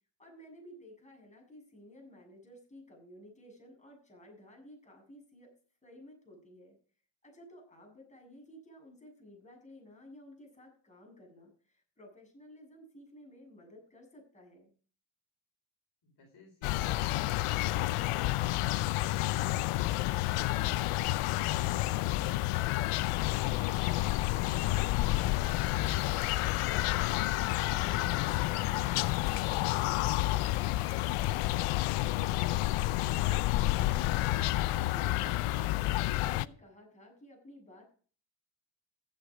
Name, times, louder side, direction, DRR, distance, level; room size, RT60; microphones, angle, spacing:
voice 1, 0.2-5.5 5.8-6.8 7.2-14.7 33.6-37.9, equal, 15° left, 0 dB, 7.4 m, -54 dB
voice 2, 16.0-19.4, left 3 dB, 50° left, 1 dB, 4.5 m, -58 dB
sound 1, 16.6-36.5, left 17 dB, 85° left, 0.7 m, -30 dB
15.5 x 8.3 x 4.9 m, 0.42 s
cardioid pair, 105°, 49 cm